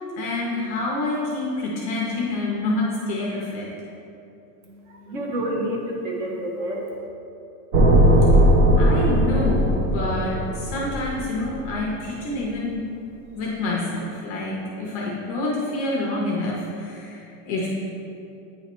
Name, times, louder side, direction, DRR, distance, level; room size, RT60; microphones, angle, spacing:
voice 1, 0.2-3.7 8.8-12.8 13.3-17.7, left 2 dB, 25° left, -4 dB, 0.4 m, -27 dB
voice 2, 4.6-7.0, right 1 dB, 55° right, 0 dB, 1.1 m, -29 dB
sound 1, 7.7-11.9, equal, 75° right, 1.1 m, -18 dB
8.7 x 3.0 x 4.4 m, 2.7 s
supercardioid pair, 175°, 46 cm